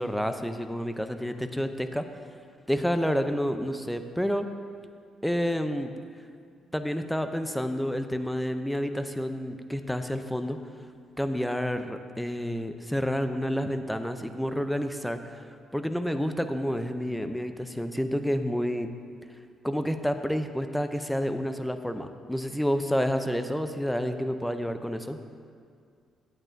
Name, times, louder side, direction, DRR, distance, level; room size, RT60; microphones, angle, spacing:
voice 1, 0.0-2.1 2.7-4.5 5.2-5.9 6.7-10.6 11.2-15.4 15.7-18.9 19.6-25.2, equal, ahead, 8 dB, 0.4 m, -29 dB
8.9 x 8.4 x 2.6 m, 2.2 s
cardioid pair, 90°, 0 cm